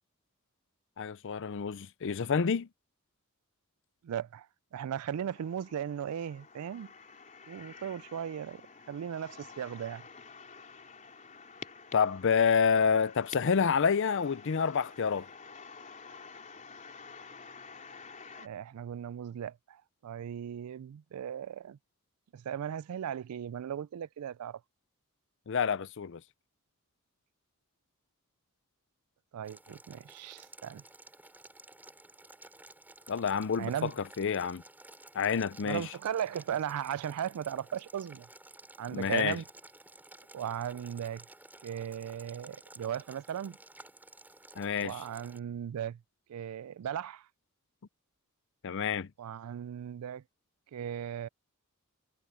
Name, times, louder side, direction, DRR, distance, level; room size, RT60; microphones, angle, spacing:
voice 1, 1.0-2.7 11.9-15.3 25.5-26.2 33.1-33.9 34.2-34.6 35.1-35.9 38.9-39.4 44.6-44.9 48.6-49.1, left 6 dB, 60° left, 0.5 m, -28 dB
voice 2, 4.0-4.5 4.7-6.9 7.5-8.6 8.9-10.0 18.4-21.8 22.3-24.6 29.3-30.8 33.6-33.9 35.6-38.3 38.8-39.4 40.3-41.2 41.6-43.6 44.8-46.0 46.3-47.3 49.2-50.2 50.7-51.3, right 9 dB, 85° right, 0.3 m, -37 dB
sound 1, 5.1-18.5, left 5 dB, 35° left, 3.9 m, -50 dB
Boiling, 29.4-45.4, right 2 dB, 10° right, 4.3 m, -54 dB
head